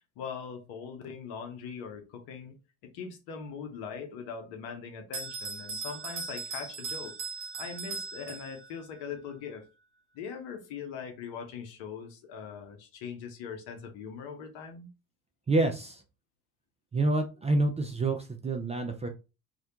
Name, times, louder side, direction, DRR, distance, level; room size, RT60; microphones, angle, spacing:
voice 1, 0.2-2.6 2.8-7.1 7.5-9.7 10.1-14.9, left 6 dB, 65° left, 0.8 m, -41 dB
Bell, 5.1-8.9, right 4 dB, 70° right, 0.8 m, -38 dB
voice 2, 15.5-16.0 16.9-19.1, right 2 dB, 15° right, 0.4 m, -27 dB
2.3 x 2.1 x 2.8 m
hypercardioid pair, 50°, 43 cm